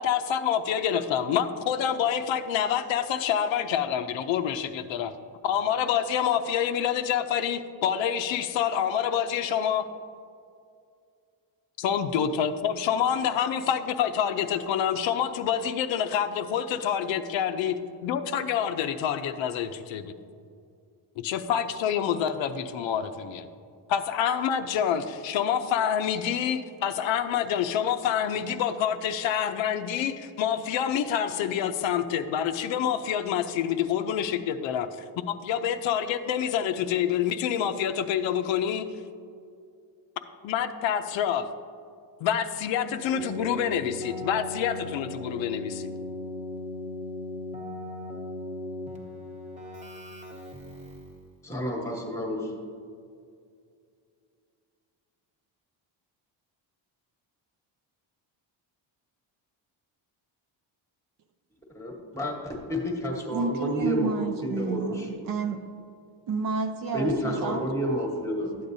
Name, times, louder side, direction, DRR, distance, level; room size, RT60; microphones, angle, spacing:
voice 1, 0.0-5.1 5.4-9.9 11.8-20.1 21.2-23.5 23.9-34.9 35.3-38.9 40.4-41.5 42.2-45.9, left 9 dB, 75° left, 9 dB, 0.6 m, -27 dB
Keyboard (musical), 43.1-51.2, left 2 dB, 15° right, 0.9 m, -38 dB
voice 2, 51.4-52.5 61.7-65.1 66.9-68.6, equal, 5° left, 0 dB, 1.1 m, -30 dB
voice 3, 63.3-65.6 66.3-67.6, right 5 dB, 45° right, 7 dB, 0.5 m, -30 dB
12.5 x 8.5 x 2.7 m, 2.3 s
cardioid pair, 175°, 47 cm